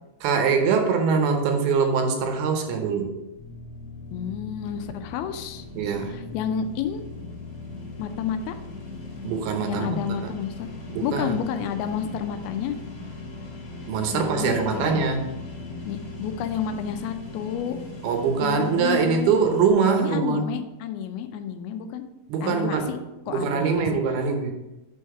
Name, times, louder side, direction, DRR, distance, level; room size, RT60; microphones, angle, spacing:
voice 1, 0.2-3.2 5.8-6.2 9.2-10.0 10.2-10.3 10.9-11.4 13.9-15.2 18.0-20.5 22.3-22.9 23.3-24.5, right 5 dB, 80° right, 4 dB, 2.8 m, -23 dB
sound 1, 3.4-19.7, left 2 dB, 60° left, 1.6 m, -39 dB
voice 2, 4.1-5.7 6.1-7.0 8.0-8.6 9.7-10.7 11.0-12.8 14.1-15.1 15.9-17.8 18.4-19.3 20.0-22.0 22.4-23.0 23.3-24.0, left 8 dB, 85° left, 8 dB, 2.5 m, -30 dB
6.3 x 5.6 x 4.7 m, 0.99 s
omnidirectional pair, 4.5 m